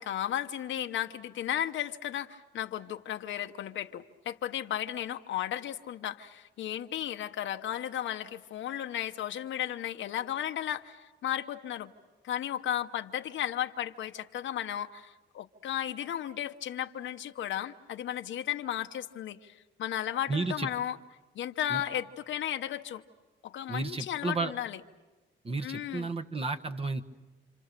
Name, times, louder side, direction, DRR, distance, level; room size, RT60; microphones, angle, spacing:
voice 1, 0.0-11.9 12.2-21.0 21.3-23.0 23.4-24.8 25.6-26.1, left 11 dB, 75° left, 6 dB, 1.0 m, -34 dB
voice 2, 20.3-20.7 21.7-21.8 23.7-24.5 25.4-27.0, right 3 dB, 30° right, 5 dB, 1.4 m, -32 dB
29.0 x 26.0 x 6.8 m, 1.2 s
cardioid pair, 90°, 20 cm